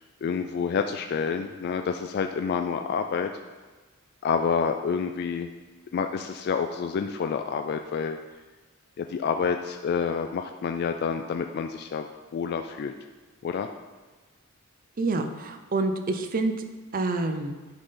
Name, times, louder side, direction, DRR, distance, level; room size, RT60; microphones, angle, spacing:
voice 1, 0.0-3.3 4.2-5.5 5.9-8.2 9.0-12.1 12.3-12.9 13.4-13.7, left 6 dB, 50° left, 6 dB, 0.3 m, -28 dB
voice 2, 15.0-16.5 16.9-17.6, right 3 dB, 40° right, 7 dB, 0.5 m, -27 dB
9.8 x 4.0 x 3.8 m, 1.3 s
head